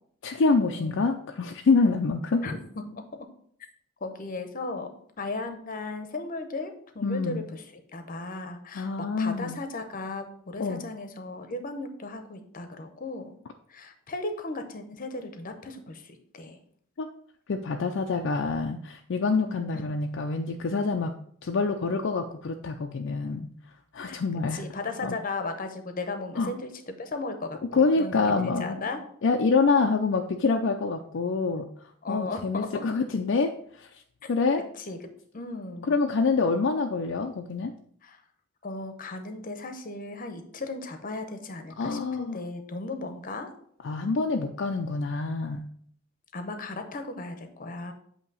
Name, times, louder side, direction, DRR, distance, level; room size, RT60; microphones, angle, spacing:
voice 1, 0.2-2.4 7.0-7.4 8.7-9.6 10.6-10.8 17.0-17.1 17.5-21.1 21.4-23.5 23.9-24.6 25.0-25.2 26.4-26.5 27.7-28.8 29.2-31.7 32.1-33.9 34.3-34.6 35.9-37.7 41.8-42.4 43.8-45.6, left 4 dB, 60° left, 3 dB, 0.4 m, -26 dB
voice 2, 4.0-4.9 5.2-8.9 9.2-13.4 13.7-16.6 19.4-19.8 24.1-24.2 24.5-29.1 32.0-32.9 34.8-35.0 35.3-36.0 38.0-38.2 38.6-43.5 46.3-47.9, left 3 dB, 40° left, 7 dB, 0.8 m, -36 dB
8.2 x 2.9 x 5.4 m, 0.64 s
head